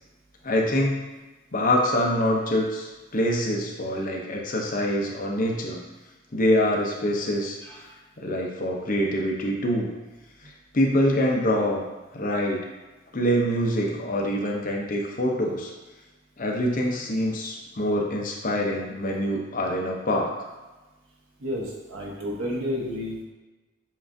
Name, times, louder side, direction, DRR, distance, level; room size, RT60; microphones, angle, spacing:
voice 1, 0.4-1.0 1.5-5.8 6.3-7.6 8.2-9.9 10.7-11.8 12.1-12.7 13.1-15.7 16.4-20.3, equal, 40° left, 0 dB, 0.6 m, -25 dB
voice 2, 7.6-7.9 21.4-23.2, left 1 dB, 80° right, -2 dB, 0.9 m, -31 dB
7.1 x 2.5 x 2.5 m, 1.2 s
head